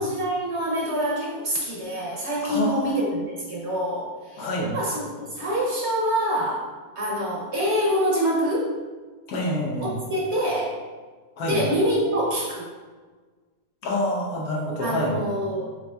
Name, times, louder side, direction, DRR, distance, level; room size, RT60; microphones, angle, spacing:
voice 1, 0.0-8.8 9.8-10.8 11.5-12.7 14.8-15.7, equal, 55° right, -4 dB, 1.0 m, -26 dB
voice 2, 2.4-2.8 4.4-4.7 9.3-9.9 11.4-11.6 13.8-15.1, left 1 dB, 80° left, -3 dB, 1.4 m, -26 dB
6.7 x 2.7 x 2.3 m, 1.4 s
omnidirectional pair, 1.6 m